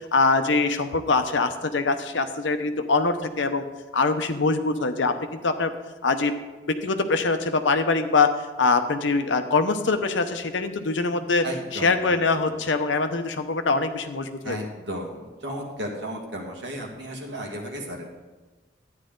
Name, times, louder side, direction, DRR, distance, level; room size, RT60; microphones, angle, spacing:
voice 1, 0.0-3.6 3.9-5.2 5.4-5.7 6.0-6.3 6.7-8.3 8.6-11.4 11.7-14.6, left 3 dB, 80° left, 9 dB, 0.8 m, -23 dB
voice 2, 11.4-12.6 14.4-18.1, right 1 dB, 75° right, 0 dB, 1.9 m, -34 dB
12.0 x 9.6 x 3.9 m, 1.2 s
head